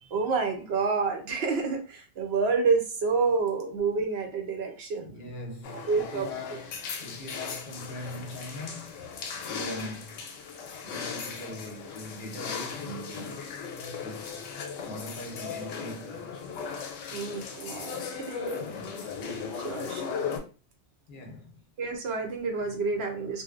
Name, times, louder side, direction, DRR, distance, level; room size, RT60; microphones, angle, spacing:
voice 1, 0.0-5.2 5.9-6.3 9.5-9.8 17.1-18.6 19.6-20.2 21.8-23.4, right 4 dB, 65° right, 0.8 m, -29 dB
voice 2, 5.0-9.1 9.5-10.2 10.8-13.5 14.0-14.5 14.8-16.5 18.6-19.2 21.1-21.6, left 1 dB, 50° left, 0.7 m, -42 dB
sound 1, 5.6-20.4, left 6 dB, 90° left, 0.9 m, -37 dB
2.7 x 2.1 x 2.4 m
omnidirectional pair, 1.2 m